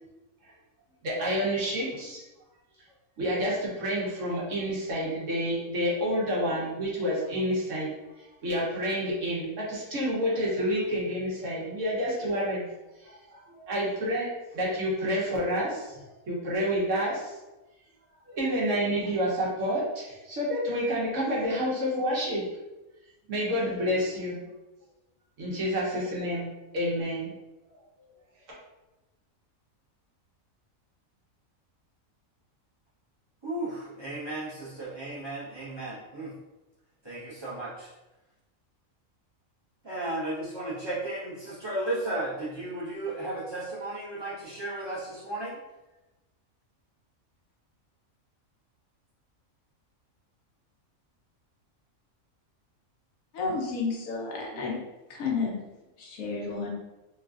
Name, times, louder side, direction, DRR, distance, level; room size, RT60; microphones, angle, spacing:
voice 1, 1.0-2.2 3.2-17.4 18.3-22.5 23.3-24.4 25.4-26.5 26.7-27.3, equal, 65° right, -4 dB, 1.2 m, -29 dB
voice 2, 33.4-36.3 37.0-37.9 39.8-45.6 54.5-54.6, right 2 dB, 25° right, -9 dB, 0.7 m, -34 dB
voice 3, 53.3-54.8 55.1-55.6 56.0-56.7, left 4 dB, 85° left, -1 dB, 1.1 m, -31 dB
3.1 x 2.4 x 2.4 m, 1.0 s
omnidirectional pair, 1.4 m